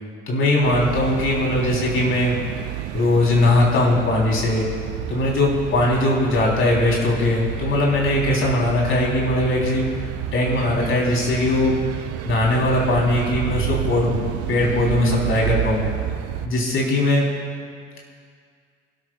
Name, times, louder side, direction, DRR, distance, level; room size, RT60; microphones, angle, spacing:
voice 1, 0.3-2.3 2.9-4.7 5.1-9.9 10.3-11.8 12.2-14.1 14.5-15.9 16.4-17.3, left 2 dB, 40° left, -2 dB, 3.7 m, -20 dB
sound 1, 0.6-16.5, right 11 dB, 50° right, 0.7 m, -29 dB
26.5 x 12.5 x 2.4 m, 2.1 s
figure-of-eight pair, 60°, 31 cm